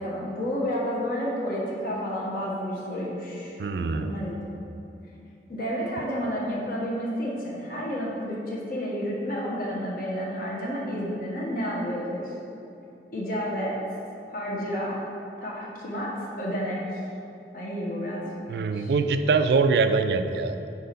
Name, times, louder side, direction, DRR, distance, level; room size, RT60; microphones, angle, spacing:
voice 1, 0.0-3.6 3.9-4.4 5.5-12.2 13.1-13.8 14.3-15.0 15.4-17.0 17.5-18.9, equal, 50° left, -5 dB, 1.0 m, -30 dB
voice 2, 3.6-4.1 18.5-20.6, right 4 dB, 60° right, 9 dB, 0.3 m, -23 dB
4.4 x 4.2 x 5.1 m, 2.8 s
head